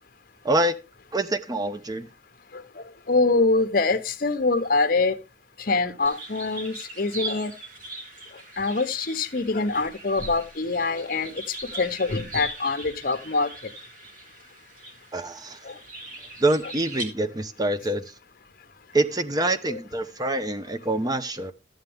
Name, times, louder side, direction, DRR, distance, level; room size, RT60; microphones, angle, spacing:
voice 1, 0.4-0.7 1.1-2.1 15.1-15.6 16.4-18.1 18.9-21.5, right 2 dB, 20° right, 0.7 m, -25 dB
voice 2, 2.5-5.2 5.6-7.5 8.6-13.5 15.6-15.7 19.7-19.8, left 3 dB, 55° left, 0.9 m, -25 dB
sound 1, 6.0-17.0, right 2 dB, 50° right, 2.3 m, -40 dB
13.0 x 7.8 x 3.5 m
head